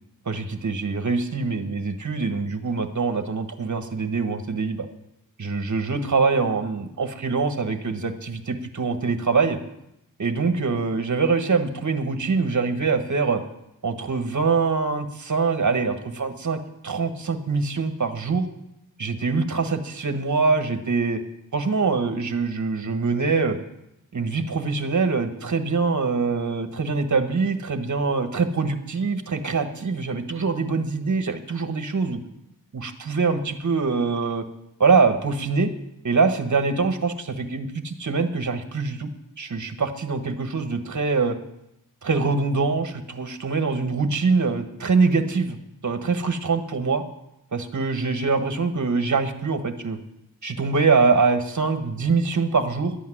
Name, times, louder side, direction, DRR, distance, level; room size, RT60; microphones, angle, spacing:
voice 1, 0.2-4.9 5.4-9.6 10.2-13.4 13.8-18.5 19.0-21.2 21.5-23.6 24.1-32.2 32.7-34.4 34.8-35.7 36.0-39.1 39.4-41.4 42.0-45.6 45.8-47.0 47.5-50.0 50.4-53.0, right 4 dB, 50° right, 8 dB, 1.4 m, -24 dB
12.0 x 8.6 x 9.9 m, 0.84 s
wide cardioid pair, 100°, 36 cm